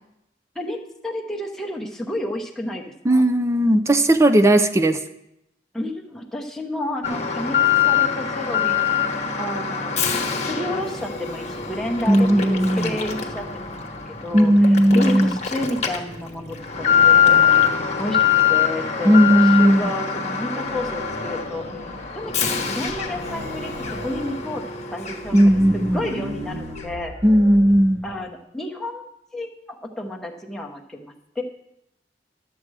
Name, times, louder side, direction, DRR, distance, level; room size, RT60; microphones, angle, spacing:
voice 1, 0.5-3.2 5.7-7.6 7.9-9.0 9.4-9.9 10.5-14.5 14.9-17.6 18.0-18.2 18.5-21.8 22.1-24.6 24.9-25.4 25.9-27.1 28.0-29.0 29.3-31.4, left 1 dB, 5° left, -1 dB, 0.9 m, -31 dB
voice 2, 3.0-5.0 12.1-12.9 14.3-15.4 19.0-19.8 25.3-26.0 27.2-28.0, equal, 15° right, 10 dB, 0.4 m, -16 dB
Alarm, 7.0-25.7 26.0-26.1 26.8-26.9, left 8 dB, 40° left, 1.1 m, -23 dB
sound 1, 20.7-22.2 22.5-22.6 22.9-24.4 25.1-28.2, equal, 60° right, 1.6 m, -36 dB
12.0 x 7.5 x 4.8 m, 0.84 s
head